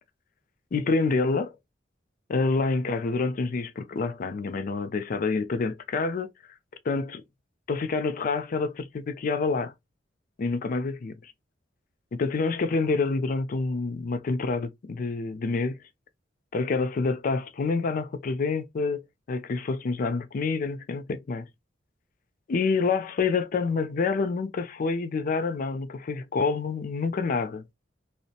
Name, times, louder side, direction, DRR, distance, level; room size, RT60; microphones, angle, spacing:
voice 1, 0.7-1.5 2.3-6.3 6.8-7.2 7.7-9.7 10.4-11.3 12.1-15.8 16.5-19.0 19.3-21.5 22.5-27.6, left 4 dB, 45° left, 0.4 m, -27 dB
2.7 x 2.0 x 2.4 m
head